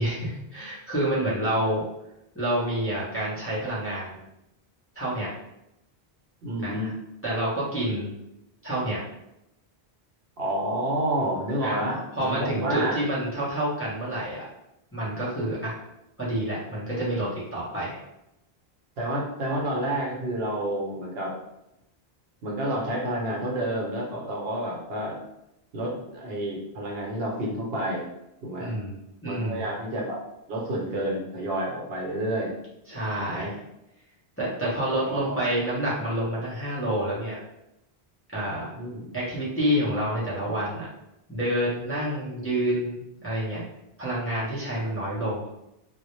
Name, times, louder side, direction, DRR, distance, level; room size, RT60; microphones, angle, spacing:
voice 1, 0.0-1.9 2.3-4.2 5.0-5.3 6.6-6.8 7.2-8.1 8.6-9.0 11.6-14.4 14.9-15.8 16.2-18.0 28.6-29.7 32.9-33.6 34.4-37.4 38.3-38.7 39.1-40.9 41.3-43.6 44.0-45.5, right 1 dB, 15° left, -8 dB, 0.5 m, -28 dB
voice 2, 6.4-6.9 10.4-13.0 19.0-21.3 22.4-25.2 25.7-28.1 28.4-28.7 29.2-30.2 30.5-32.5 33.2-33.6 35.0-35.4 38.8-39.1, right 1 dB, 70° right, -2 dB, 0.9 m, -29 dB
2.1 x 2.0 x 2.9 m, 0.87 s
omnidirectional pair, 1.1 m